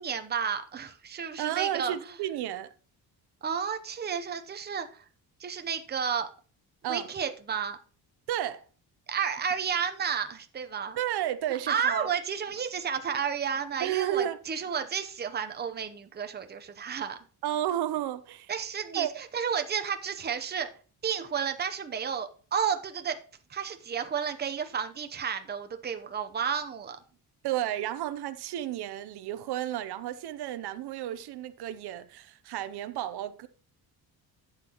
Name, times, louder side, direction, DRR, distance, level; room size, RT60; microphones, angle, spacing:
voice 1, 0.0-1.9 3.4-5.0 5.4-6.3 6.9-7.8 9.1-11.0 11.5-17.2 18.5-20.7 21.0-23.2 23.5-27.0, right 7 dB, 25° right, 0.8 m, -32 dB
voice 2, 1.4-2.7 6.8-7.1 8.3-8.6 11.0-12.1 13.8-14.4 17.4-18.5 19.0-19.2 27.4-33.5, right 12 dB, 75° right, 0.7 m, -32 dB
11.5 x 8.2 x 2.9 m
cardioid pair, 150°, 39 cm